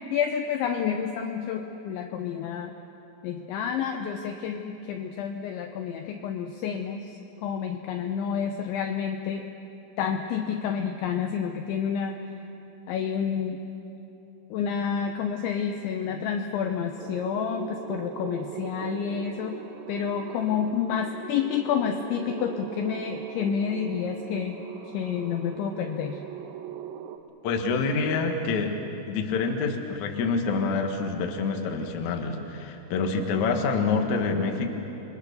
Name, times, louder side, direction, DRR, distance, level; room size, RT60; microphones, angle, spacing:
voice 1, 0.1-2.7 3.2-9.4 10.0-12.2 12.9-13.6 14.5-19.6 19.9-24.6 24.9-26.2, left 7 dB, 75° left, 4 dB, 2.9 m, -29 dB
sound 1, 17.0-27.2, right 9 dB, 75° right, 3.2 m, -40 dB
voice 2, 27.4-28.7 29.1-34.7, left 4 dB, 60° left, 3 dB, 2.0 m, -26 dB
29.0 x 22.5 x 6.9 m, 2.9 s
omnidirectional pair, 6.0 m